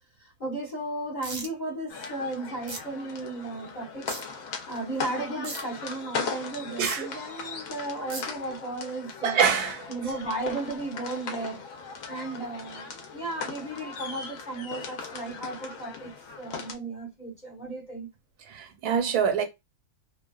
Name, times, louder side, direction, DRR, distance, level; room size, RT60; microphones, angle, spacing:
voice 1, 0.2-4.1 4.7-9.4 9.9-11.6 12.1-18.1, right 2 dB, 40° left, 0.7 m, -35 dB
sound 1, 1.2-1.5 2.7-2.8 4.1-4.2 5.4-5.6 6.8-6.9 8.1-8.2, right 3 dB, 55° right, 0.5 m, -35 dB
sound 2, 1.9-16.7, left 5 dB, 70° left, 1.0 m, -38 dB
voice 2, 9.2-9.9 18.5-19.4, right 7 dB, 85° right, 1.2 m, -25 dB
2.6 x 2.3 x 2.2 m
omnidirectional pair, 1.6 m